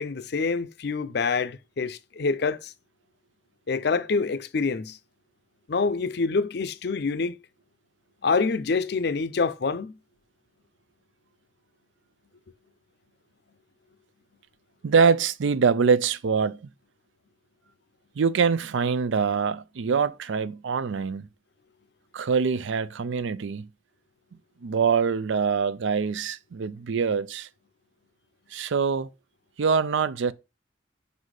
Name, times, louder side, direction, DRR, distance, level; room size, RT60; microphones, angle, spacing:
voice 1, 0.0-2.7 3.7-5.0 5.7-7.3 8.2-9.9, left 4 dB, 55° left, 0.5 m, -26 dB
voice 2, 14.8-16.6 18.2-21.3 22.1-23.7 24.6-27.5 28.5-29.1 29.6-30.3, right 5 dB, 80° right, 0.4 m, -24 dB
5.4 x 4.1 x 4.8 m
head